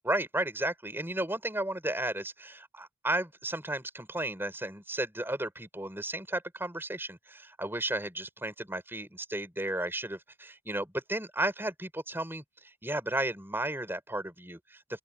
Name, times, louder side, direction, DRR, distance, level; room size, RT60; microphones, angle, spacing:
voice 1, 0.0-15.0, right 1 dB, 10° right, 5.0 m, -34 dB
open air
head